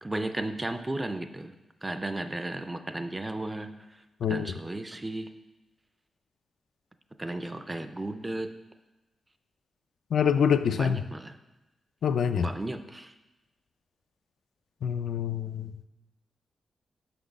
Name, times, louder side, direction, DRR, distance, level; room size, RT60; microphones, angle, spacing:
voice 1, 0.0-1.5 1.8-4.0 4.3-5.3 7.2-8.5 10.7-11.4 12.4-13.1, right 2 dB, 15° right, 9 dB, 0.4 m, -34 dB
voice 2, 10.1-11.0 12.0-12.4 14.8-15.9, left 7 dB, 75° left, 10 dB, 0.4 m, -26 dB
6.1 x 6.0 x 5.1 m, 1.0 s
wide cardioid pair, 170°, 0 cm